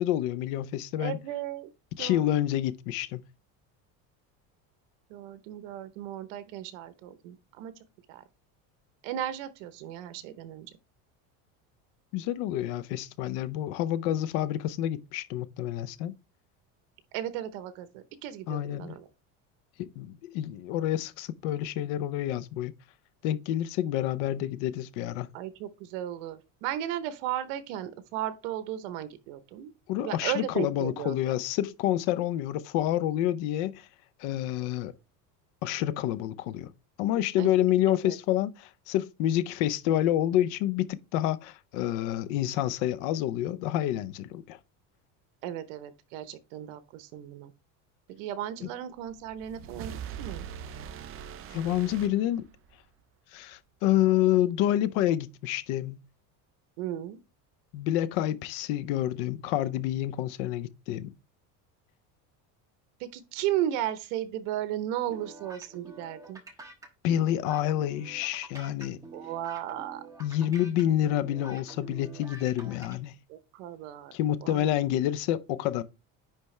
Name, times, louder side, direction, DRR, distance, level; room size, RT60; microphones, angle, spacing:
voice 1, 0.0-1.2 2.0-3.2 12.1-16.1 18.5-18.9 19.8-22.7 23.2-25.3 29.9-33.9 34.2-34.9 35.6-36.7 37.0-40.9 41.1-44.6 51.5-52.5 53.3-56.0 57.7-61.1 67.0-69.0 70.2-73.2 74.1-75.8, left 12 dB, 75° left, 0.7 m, -28 dB
voice 2, 1.0-1.7 2.0-2.6 5.1-8.2 9.0-10.7 17.1-19.1 25.3-29.7 30.0-31.4 37.4-38.2 45.4-47.5 48.1-50.5 56.8-57.2 63.0-66.4 69.1-70.0 73.3-74.7, right 11 dB, 85° right, 0.9 m, -35 dB
sound 1, 49.1-52.9, right 9 dB, 35° right, 0.5 m, -42 dB
sound 2, 65.1-72.9, right 3 dB, 10° right, 1.2 m, -47 dB
9.9 x 3.5 x 3.2 m
cardioid pair, 160°, 38 cm